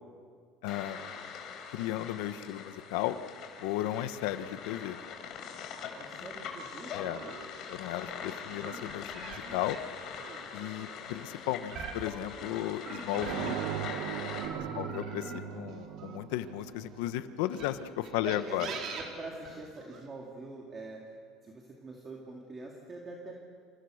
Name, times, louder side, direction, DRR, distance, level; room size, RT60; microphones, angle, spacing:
voice 1, 0.6-1.0 1.7-3.2 3.6-5.0 6.9-7.2 7.7-9.8 10.5-13.6 14.7-18.7, left 13 dB, 85° left, 11 dB, 1.3 m, -35 dB
sound 1, 0.7-14.5, left 7 dB, 50° left, 4.3 m, -43 dB
voice 2, 6.0-7.3 14.4-15.0 18.2-21.0 21.4-23.4, right 2 dB, 25° right, -1 dB, 2.9 m, -44 dB
sound 2, 7.2-14.0 14.4-16.7 17.4-20.1, right 5 dB, 45° right, 4.0 m, -44 dB
sound 3, 13.1-17.8, right 10 dB, 70° right, 1.2 m, -39 dB
29.5 x 28.0 x 6.6 m, 2.2 s
cardioid pair, 150°, 0 cm